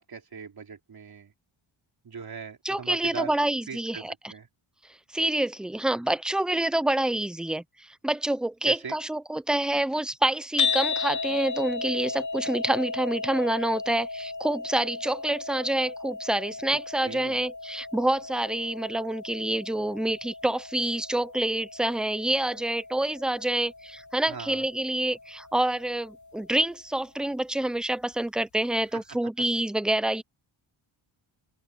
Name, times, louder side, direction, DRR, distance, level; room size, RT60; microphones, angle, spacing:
voice 1, 0.0-1.3 2.0-3.3 3.7-4.5 8.6-9.0 16.7-17.4 24.3-24.7 28.9-29.2, right 6 dB, 50° right, 4.1 m, -40 dB
voice 2, 2.6-4.1 5.1-7.6 8.0-30.2, right 1 dB, ahead, 0.5 m, -27 dB
sound 1, 10.6-26.8, left 4 dB, 35° left, 1.1 m, -35 dB
open air
wide cardioid pair, 155°, 48 cm